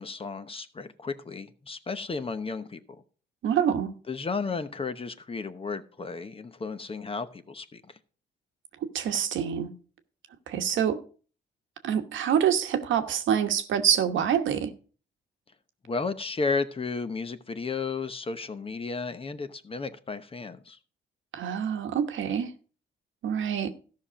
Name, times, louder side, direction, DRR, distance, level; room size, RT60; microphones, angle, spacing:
voice 1, 0.0-3.0 4.1-7.8 15.8-20.8, left 4 dB, 30° left, 0.9 m, -33 dB
voice 2, 3.4-3.9 8.9-9.7 10.5-11.0 11.8-14.7 21.3-22.5 23.2-23.7, right 8 dB, 75° right, 1.2 m, -26 dB
13.5 x 5.8 x 5.1 m
cardioid pair, 90°, 20 cm